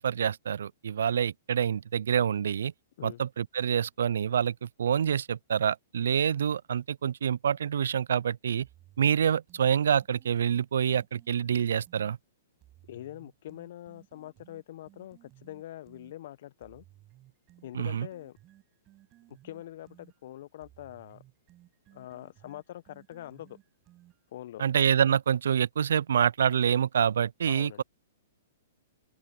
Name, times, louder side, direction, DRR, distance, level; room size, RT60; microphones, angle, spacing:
voice 1, 0.0-2.7 3.0-8.7 9.0-12.2 17.7-18.1 24.6-27.8, right 8 dB, 70° right, 0.4 m, -27 dB
sound 1, 8.6-12.1 12.6-16.1 16.6-24.4, right 15 dB, 30° right, 7.9 m, -59 dB
voice 2, 12.9-16.8 17.6-18.4 19.3-21.2 21.9-23.6 24.3-24.6 27.5-27.8, left 13 dB, 60° left, 1.1 m, -44 dB
open air
hypercardioid pair, 120°, 0 cm